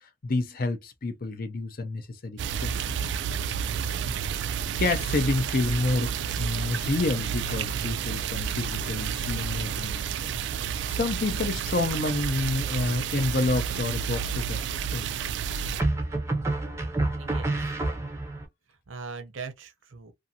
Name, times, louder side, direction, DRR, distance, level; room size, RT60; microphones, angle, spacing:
voice 1, 0.2-2.8 4.1-4.2 4.8-10.1 10.9-14.6 14.9-15.1, left 2 dB, 50° left, 0.6 m, -29 dB
sound 1, 2.4-15.8, right 7 dB, 65° right, 0.3 m, -30 dB
sound 2, 13.1-13.7 15.8-18.5, right 2 dB, 15° right, 0.6 m, -28 dB
voice 2, 17.2-17.8 18.7-20.1, right 4 dB, 90° right, 0.7 m, -41 dB
2.6 x 2.5 x 2.6 m
head